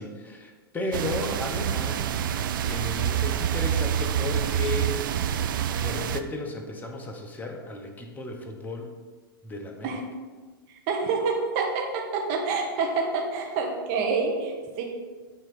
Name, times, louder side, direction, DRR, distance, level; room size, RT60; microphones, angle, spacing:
voice 1, 0.0-2.1 2.6-4.9 5.8-8.9 9.4-10.0, left 2 dB, 15° left, 2 dB, 1.0 m, -34 dB
sound 1, 0.9-6.2, right 9 dB, 65° right, 0.4 m, -27 dB
voice 2, 10.9-14.8, right 4 dB, 45° right, 1 dB, 1.2 m, -27 dB
7.5 x 3.1 x 5.2 m, 1.4 s
hypercardioid pair, 110°, 12 cm